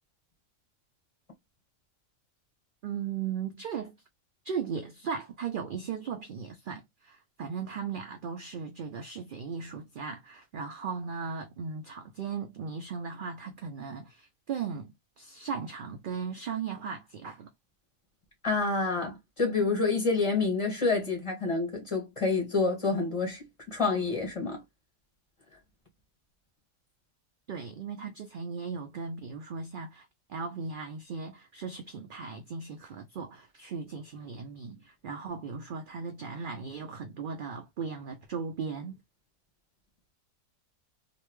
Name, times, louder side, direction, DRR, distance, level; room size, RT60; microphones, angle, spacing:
voice 1, 2.8-4.0 4.4-17.5 27.5-39.0, right 6 dB, 70° right, 0.5 m, -37 dB
voice 2, 18.4-24.6, left 3 dB, 25° left, 1.6 m, -28 dB
3.2 x 2.5 x 3.0 m
omnidirectional pair, 1.4 m